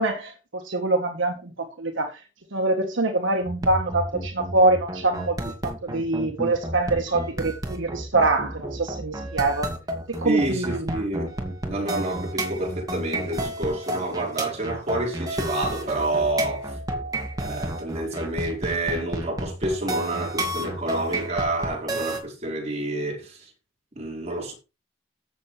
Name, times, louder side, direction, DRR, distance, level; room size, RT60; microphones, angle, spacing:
voice 1, 0.0-2.1 2.5-9.7 10.1-11.0, right 2 dB, 70° right, 1.4 m, -24 dB
sound 1, 3.4-22.2, right 1 dB, 20° right, 2.3 m, -31 dB
voice 2, 10.2-11.3 11.7-16.8 17.4-23.4 23.9-24.5, right 2 dB, 35° right, 4.8 m, -28 dB
14.5 x 7.0 x 3.3 m
head